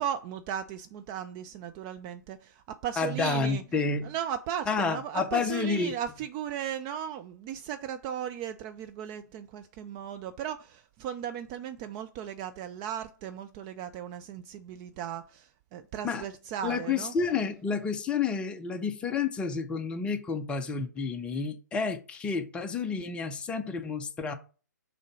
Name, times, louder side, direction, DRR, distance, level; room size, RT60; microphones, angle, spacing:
voice 1, 0.0-3.6 4.0-17.1, right 9 dB, 20° right, 0.3 m, -36 dB
voice 2, 3.0-4.1 4.7-5.9 16.0-16.2 16.6-24.3, left 5 dB, 10° left, 0.7 m, -30 dB
6.5 x 3.8 x 4.7 m
figure-of-eight pair, 130°, 10 cm